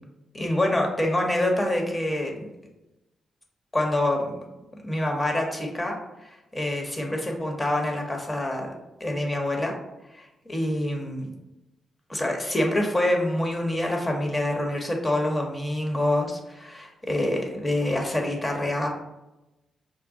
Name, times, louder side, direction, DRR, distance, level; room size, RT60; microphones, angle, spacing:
voice 1, 0.3-2.5 3.7-4.4 4.8-5.9 6.2-9.7 10.1-11.3 12.1-18.9, left 1 dB, 20° left, 1 dB, 1.1 m, -26 dB
5.2 x 2.1 x 3.7 m, 0.97 s
supercardioid pair, 60°, 0 cm